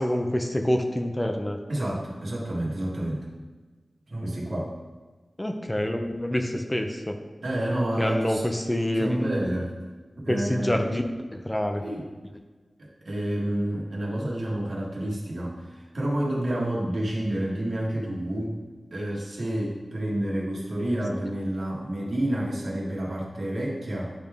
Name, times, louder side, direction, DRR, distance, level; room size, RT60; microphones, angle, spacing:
voice 1, 0.0-1.6 5.4-7.2 8.0-9.3 10.3-11.0 11.3-11.8, left 1 dB, 20° left, 4 dB, 0.6 m, -26 dB
voice 2, 1.7-3.3 4.1-4.8 7.4-8.4 8.9-9.7 10.2-10.8 11.8-12.1 12.8-18.6 18.9-24.1, right 1 dB, 75° right, -4 dB, 1.6 m, -29 dB
10.5 x 3.5 x 3.5 m, 1.3 s
wide cardioid pair, 90°, 0 cm